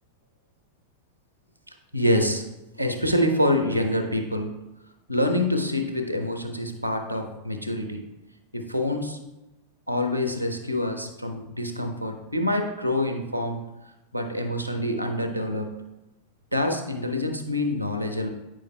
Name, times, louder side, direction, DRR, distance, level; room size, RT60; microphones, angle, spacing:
voice 1, 1.7-2.5 2.8-4.6 5.1-8.0 8.5-9.2 9.9-13.6 14.1-15.8 16.5-18.3, left 1 dB, 90° left, 6 dB, 0.7 m, -26 dB
8.7 x 6.3 x 2.2 m, 1.0 s
figure-of-eight pair, 90°, 0 cm